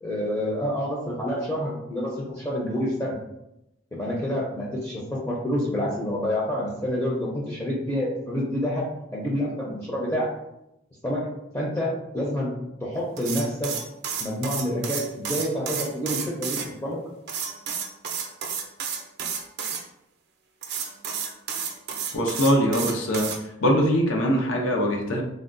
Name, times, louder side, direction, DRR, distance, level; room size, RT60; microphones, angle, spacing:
voice 1, 0.0-3.1 3.9-10.3 11.0-11.3 11.5-12.5 12.8-13.7 14.2-17.0, equal, 15° left, -5 dB, 0.5 m, -28 dB
sound 1, 13.2-16.7 17.3-19.8 20.6-23.4, right 6 dB, 55° right, 0.4 m, -31 dB
voice 2, 22.1-23.3 23.6-25.2, equal, 90° left, 1 dB, 0.6 m, -22 dB
3.4 x 2.2 x 2.5 m, 0.86 s
head